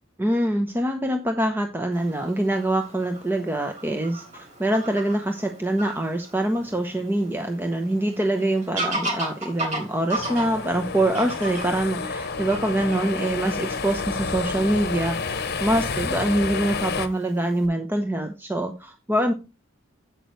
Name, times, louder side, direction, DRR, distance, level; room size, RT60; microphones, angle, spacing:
voice 1, 0.2-19.3, right 1 dB, 10° right, 5 dB, 0.7 m, -25 dB
Fowl / Bird vocalization bird call bird song, 1.9-17.7, right 1 dB, 35° right, 3.8 m, -37 dB
sound 1, 10.1-17.1, left 4 dB, 50° left, 0.9 m, -30 dB
10.5 x 8.1 x 3.1 m, 0.27 s
head